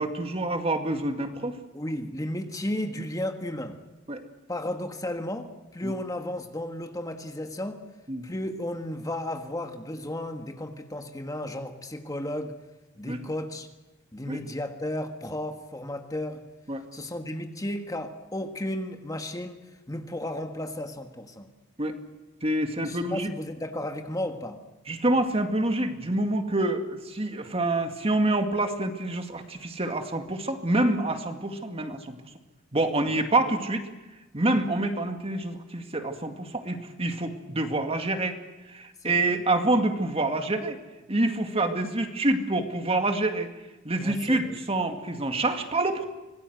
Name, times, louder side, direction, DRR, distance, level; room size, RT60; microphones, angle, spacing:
voice 1, 0.0-1.6 4.1-4.2 5.8-5.9 8.1-8.2 13.0-13.2 14.3-14.4 16.7-16.8 21.8-21.9 22.4-23.3 24.9-32.2 32.7-33.9 34.3-38.4 38.7-40.8 41.1-43.5 43.8-46.0, right 2 dB, 30° right, 6 dB, 2.2 m, -27 dB
voice 2, 1.7-3.8 4.5-7.8 8.2-12.5 13.0-13.7 14.1-16.4 16.9-19.6 19.9-21.5 22.8-24.6 33.1-33.2 39.0-39.5 44.0-44.6, left 1 dB, 20° left, 6 dB, 1.6 m, -34 dB
25.5 x 20.0 x 8.1 m, 1.1 s
head